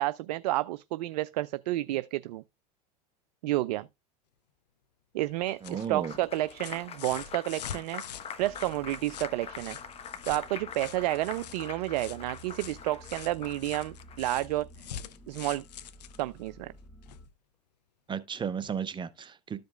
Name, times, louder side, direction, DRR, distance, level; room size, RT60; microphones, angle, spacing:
voice 1, 0.0-2.4 3.4-3.9 5.1-8.0 8.4-9.8 10.3-14.7 15.3-15.6 16.2-16.7, right 16 dB, 75° right, 0.4 m, -30 dB
sound 1, 5.3-17.3 18.6-18.7, left 9 dB, 90° left, 0.6 m, -46 dB
Applause, 5.5-14.2, left 6 dB, 30° left, 1.0 m, -44 dB
voice 2, 5.6-6.1 18.1-19.6, right 7 dB, 25° right, 0.7 m, -34 dB
sound 2, 8.4-17.3, equal, 5° left, 1.4 m, -53 dB
13.5 x 5.2 x 2.3 m
hypercardioid pair, 95°, 21 cm